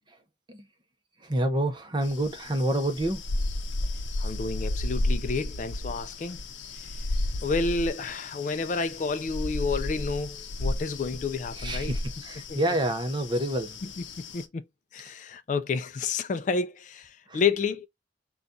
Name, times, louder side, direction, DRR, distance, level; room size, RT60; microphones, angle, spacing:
voice 1, 1.2-3.2 11.6-13.8 17.3-17.4, right 1 dB, 25° right, 0.7 m, -28 dB
sound 1, 2.0-14.4, left 1 dB, 90° left, 0.6 m, -33 dB
voice 2, 4.2-6.4 6.8-7.0 7.4-11.9 12.5-12.6 14.2-14.6 14.9-17.9, left 4 dB, 40° left, 0.3 m, -30 dB
3.9 x 2.3 x 3.8 m
head